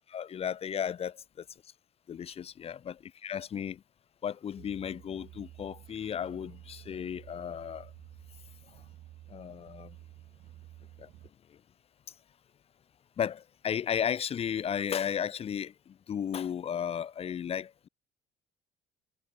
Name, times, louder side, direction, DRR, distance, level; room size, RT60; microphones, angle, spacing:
voice 1, 0.1-1.4 2.1-3.8 4.2-7.9 9.3-10.0 11.0-11.1 11.5-11.6 13.2-17.9, left 8 dB, 35° left, 0.5 m, -34 dB
sound 1, 4.6-11.3, right 14 dB, 70° right, 2.7 m, -52 dB
cardioid pair, 110°, 17 cm